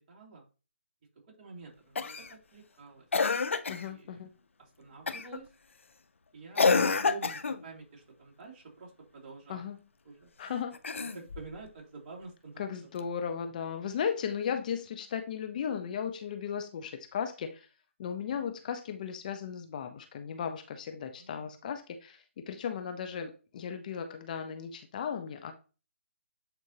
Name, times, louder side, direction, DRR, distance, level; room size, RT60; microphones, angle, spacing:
voice 1, 0.1-0.4 1.4-3.1 3.7-4.2 4.6-5.5 6.3-6.7 7.0-9.6 10.0-10.3 11.1-12.7 13.1-13.2 21.2-21.5, right 4 dB, 35° right, 2.9 m, -48 dB
Cough, 2.0-2.3 3.1-3.9 5.1-5.4 6.6-7.6 10.7-11.5 13.0-13.1, left 4 dB, 70° left, 0.7 m, -28 dB
voice 2, 3.7-4.3 9.5-9.8 10.4-10.8 12.6-17.7 18.0-25.5, left 7 dB, 35° left, 0.7 m, -36 dB
8.8 x 4.5 x 2.8 m
figure-of-eight pair, 150°, 7 cm